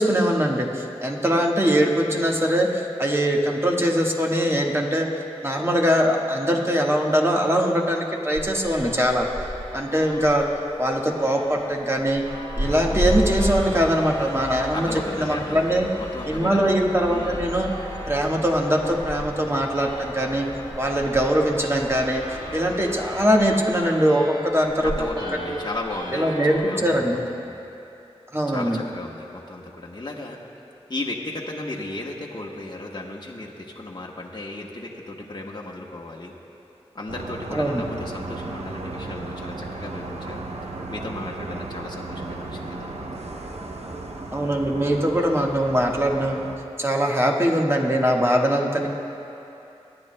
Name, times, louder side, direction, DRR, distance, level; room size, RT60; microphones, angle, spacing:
voice 1, 0.0-5.1 5.4-9.3 9.7-10.4 10.8-12.2 12.6-15.9 16.2-17.7 18.1-20.5 20.8-22.2 22.5-24.9 25.5-25.6 26.1-27.2 28.3-28.8 37.5-37.8 44.3-46.4 46.8-48.9, equal, 25° right, -1 dB, 1.5 m, -22 dB
sound 1, 8.4-26.6, equal, 50° right, 2.4 m, -34 dB
sound 2, 12.6-23.6, left 1 dB, 25° left, 1.9 m, -39 dB
voice 2, 14.7-16.8 17.1-17.5 24.8-27.6 28.5-30.4 30.9-36.3 36.9-40.5 40.9-43.4, left 2 dB, 40° left, -3 dB, 1.2 m, -35 dB
sound 3, 37.1-46.6, right 2 dB, 70° right, 0.8 m, -35 dB
23.5 x 9.9 x 2.2 m, 2.8 s
cardioid pair, 40°, 11 cm